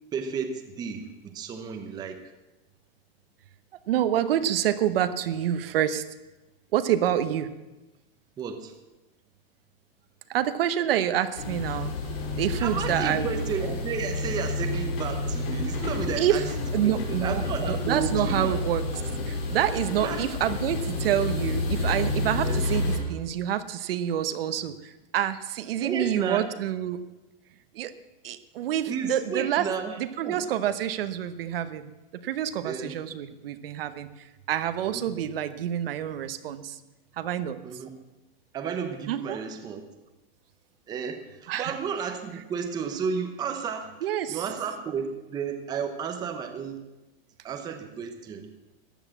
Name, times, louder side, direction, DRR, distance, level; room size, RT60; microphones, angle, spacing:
voice 1, 0.1-2.2 8.4-8.7 12.6-16.4 16.8-18.6 20.0-20.2 22.4-22.6 25.8-26.4 28.9-30.4 32.6-33.0 34.9-35.1 37.6-37.9 38.5-39.8 40.9-43.9 44.3-46.8 47.4-48.5, right 6 dB, 15° right, 5 dB, 0.9 m, -32 dB
voice 2, 3.9-6.0 6.7-7.5 10.3-11.9 12.4-13.4 16.2-16.4 16.7-17.4 17.7-18.8 19.3-27.0 27.7-27.9 28.2-29.7 30.0-31.9 32.2-36.8 37.2-37.6 39.1-39.4 41.5-41.8 44.0-44.4, right 11 dB, 70° right, 11 dB, 1.1 m, -27 dB
sound 1, 11.4-23.0, left 2 dB, 80° left, 4.1 m, -30 dB
14.5 x 10.5 x 7.3 m, 1.0 s
supercardioid pair, 175°, 30 cm